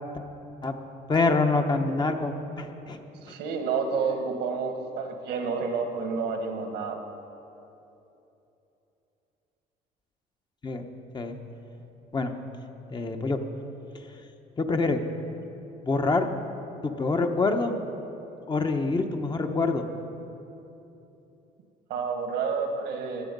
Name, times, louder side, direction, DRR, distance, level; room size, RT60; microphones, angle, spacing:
voice 1, 1.1-3.0 3.3-3.4 10.6-10.8 11.1-11.4 12.1-12.3 12.9-13.4 14.6-15.0 15.8-16.3 16.8-17.8 18.5-19.9, left 3 dB, 25° left, 6 dB, 1.0 m, -26 dB
voice 2, 3.2-7.0 21.9-23.3, right 5 dB, 85° right, 5 dB, 1.6 m, -29 dB
15.5 x 10.5 x 5.3 m, 2.9 s
cardioid pair, 110°, 17 cm